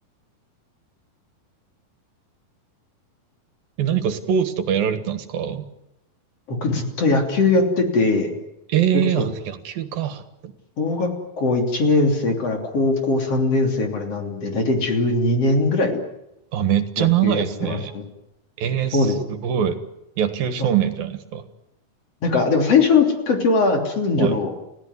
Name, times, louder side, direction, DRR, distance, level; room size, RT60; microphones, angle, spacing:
voice 1, 3.8-5.6 8.7-10.5 16.5-17.9 18.6-19.8 20.2-21.5 24.2-24.3, right 9 dB, 75° right, 10 dB, 3.3 m, -23 dB
voice 2, 6.5-8.3 8.9-9.3 10.8-11.1 11.4-16.0 17.0-18.0 18.9-19.2 22.2-24.5, left 3 dB, 40° left, 3 dB, 3.9 m, -20 dB
30.0 x 16.5 x 9.7 m, 0.89 s
omnidirectional pair, 4.3 m